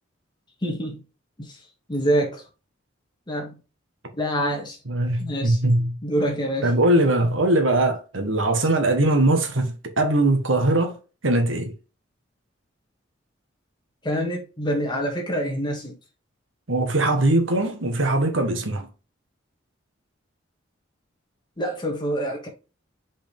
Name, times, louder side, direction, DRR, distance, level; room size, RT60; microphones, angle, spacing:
voice 1, 0.6-1.0 1.4-1.6 1.9-2.4 3.3-3.6 4.2-4.8 5.2-5.6 6.0-6.7 14.0-16.0 21.6-22.5, equal, 25° left, 1.9 m, -26 dB
voice 2, 4.9-6.0 6.6-11.0 11.2-11.7 16.7-18.9, right 1 dB, 80° right, 1.5 m, -21 dB
5.4 x 5.1 x 3.6 m
head